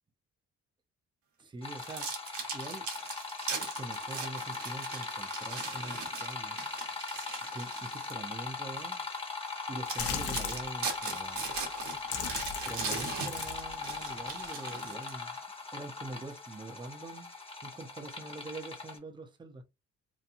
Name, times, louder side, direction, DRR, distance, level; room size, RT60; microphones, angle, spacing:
voice 1, 1.4-2.1 2.5-2.9 3.5-6.6 7.5-9.1 9.7-11.4 12.7-15.4 15.7-17.3 17.6-19.6, right 2 dB, 15° right, 0.6 m, -44 dB
sound 1, 1.6-19.0, left 4 dB, 20° left, 0.9 m, -39 dB
sound 2, 1.8-8.2 8.8-8.9 9.5-9.6 9.9-15.4, right 5 dB, 75° right, 1.0 m, -40 dB
sound 3, 10.0-10.7 11.5-11.6 12.0-14.5, left 6 dB, 50° left, 0.6 m, -38 dB
2.9 x 2.2 x 2.5 m
cardioid pair, 90°, 30 cm